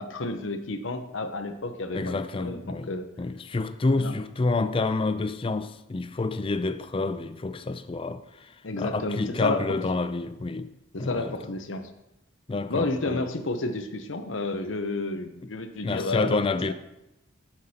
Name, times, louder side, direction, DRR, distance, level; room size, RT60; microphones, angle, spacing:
voice 1, 0.0-3.1 4.0-4.1 8.6-9.8 10.9-11.9 12.7-16.4 16.7-16.8, left 2 dB, 80° left, 0.8 m, -31 dB
voice 2, 1.9-10.7 11.0-11.4 12.5-13.3 15.8-16.7, left 3 dB, 30° left, 0.4 m, -28 dB
14.0 x 5.9 x 2.8 m
head